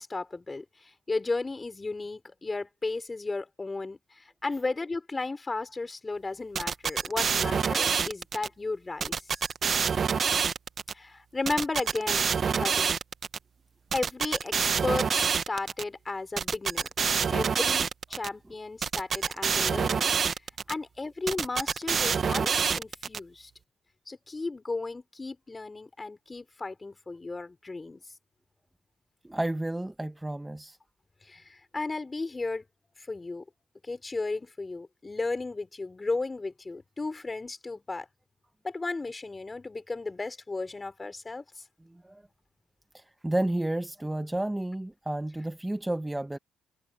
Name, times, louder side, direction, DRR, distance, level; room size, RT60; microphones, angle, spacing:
voice 1, 0.0-9.2 10.9-13.0 13.9-16.9 17.3-20.2 20.7-23.5 24.1-28.0 31.2-32.6 33.0-33.4 33.8-38.1 38.6-41.6, left 3 dB, 25° left, 4.0 m, -34 dB
sound 1, 6.5-8.5 9.0-10.9 11.5-13.4 13.9-15.8 16.4-18.3 18.8-20.7 21.3-23.2, right 6 dB, 45° right, 0.9 m, -27 dB
voice 2, 29.2-30.8 41.8-42.2 42.9-46.4, right 1 dB, 10° right, 1.0 m, -32 dB
cardioid pair, 90°, 0 cm